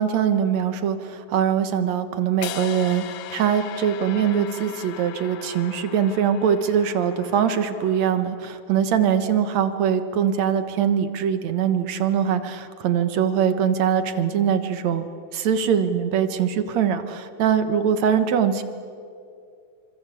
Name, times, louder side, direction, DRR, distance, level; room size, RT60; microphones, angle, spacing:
voice 1, 0.0-3.0 3.3-18.6, right 8 dB, 70° right, 10 dB, 2.6 m, -22 dB
sound 1, 2.4-8.5, left 13 dB, 70° left, 2.0 m, -39 dB
26.5 x 25.5 x 8.4 m, 2.4 s
omnidirectional pair, 3.3 m